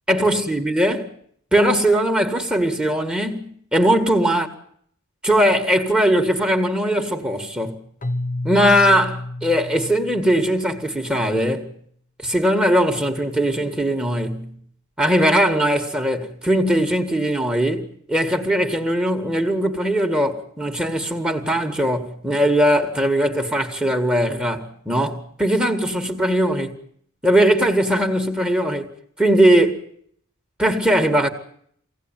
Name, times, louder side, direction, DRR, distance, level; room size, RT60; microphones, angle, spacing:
voice 1, 0.1-1.1 1.5-4.5 5.2-7.8 8.4-11.7 12.2-14.6 15.0-26.8 27.2-28.9 29.2-29.8 30.6-31.3, right 1 dB, 5° right, 1.9 m, -20 dB
Keyboard (musical), 8.0-11.0, left 1 dB, 40° left, 1.0 m, -30 dB
24.0 x 17.0 x 9.1 m
head